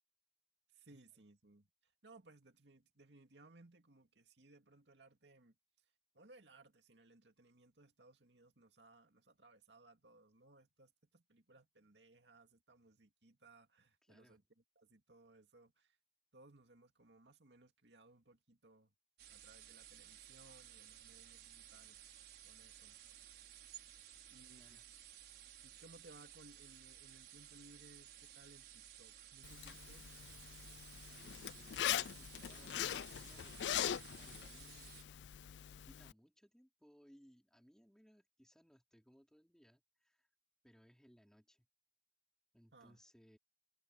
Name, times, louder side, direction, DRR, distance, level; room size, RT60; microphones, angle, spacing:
voice 1, 0.7-5.6 6.1-16.0 16.3-18.9 19.3-22.0 22.4-23.0 24.3-24.8 25.6-30.3 42.7-43.0, right 2 dB, 90° right, 2.4 m, -64 dB
voice 2, 14.0-14.4 24.5-24.8 31.0-35.1 35.8-40.3 40.6-41.7 42.5-43.4, equal, 5° left, 5.0 m, -67 dB
sound 1, 19.2-35.0, right 11 dB, 70° right, 5.9 m, -57 dB
Zipper (clothing), 29.4-36.1, left 10 dB, 90° left, 0.4 m, -42 dB
head